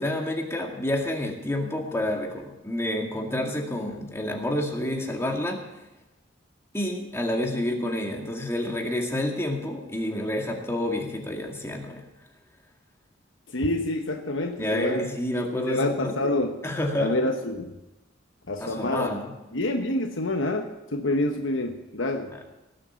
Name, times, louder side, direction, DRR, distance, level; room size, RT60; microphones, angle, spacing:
voice 1, 0.0-5.6 6.7-12.0 14.6-16.2 16.6-17.1 18.6-19.3 22.3-22.4, left 1 dB, 15° left, 1 dB, 2.1 m, -29 dB
voice 2, 13.5-15.1 15.7-16.5 17.0-17.7 18.5-19.1 19.5-22.3, left 1 dB, 75° left, 4 dB, 1.1 m, -27 dB
18.5 x 7.8 x 7.1 m, 0.98 s
head